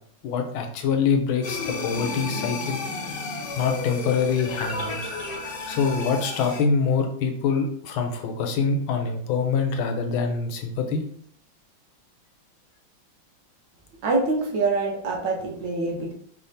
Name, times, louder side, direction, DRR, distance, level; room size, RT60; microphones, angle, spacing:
voice 1, 0.2-2.8 3.6-5.1 5.7-11.0, left 5 dB, 85° left, 5 dB, 1.5 m, -25 dB
sound 1, 1.4-6.6, left 3 dB, 60° left, 1.2 m, -32 dB
voice 2, 14.0-16.1, right 3 dB, 65° right, 0 dB, 1.4 m, -25 dB
5.0 x 3.5 x 2.7 m, 0.65 s
omnidirectional pair, 2.2 m